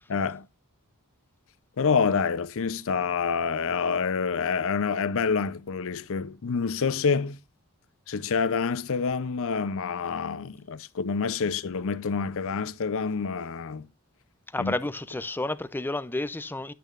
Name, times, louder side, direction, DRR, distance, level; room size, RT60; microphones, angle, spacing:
voice 1, 0.1-0.5 1.8-7.4 8.1-13.9 14.6-14.7, left 5 dB, 65° left, 0.5 m, -27 dB
voice 2, 14.5-16.7, left 2 dB, 10° left, 0.4 m, -30 dB
9.3 x 8.6 x 2.4 m
head